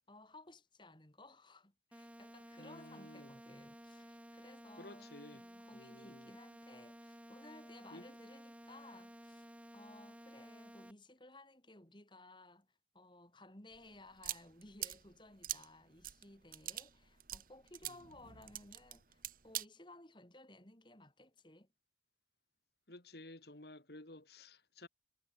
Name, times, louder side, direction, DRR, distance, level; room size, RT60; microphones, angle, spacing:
voice 1, 0.1-12.7 12.9-21.7, left 2 dB, 25° left, 3.3 m, -58 dB
sound 1, 1.9-10.9, equal, 5° right, 3.4 m, -55 dB
voice 2, 2.6-3.4 4.8-5.4 5.7-6.3 7.9-8.1 17.9-18.0 22.9-24.9, left 1 dB, 60° left, 2.8 m, -54 dB
sound 2, 13.7-19.7, right 13 dB, 50° right, 1.8 m, -45 dB
head